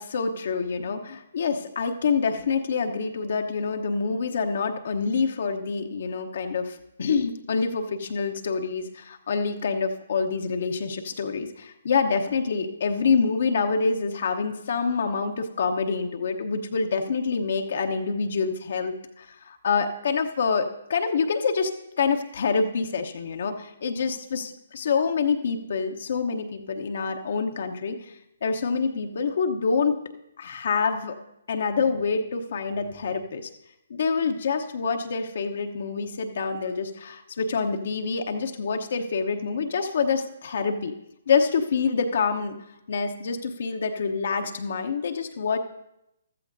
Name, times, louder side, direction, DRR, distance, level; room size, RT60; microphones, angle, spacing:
voice 1, 0.0-21.7 22.0-28.1 28.4-30.0 30.4-31.1 31.5-33.5 33.9-40.9 41.3-42.6 42.9-45.6, left 5 dB, 60° left, 4 dB, 0.9 m, -26 dB
14.5 x 13.5 x 2.7 m, 0.84 s
figure-of-eight pair, 135°, 0 cm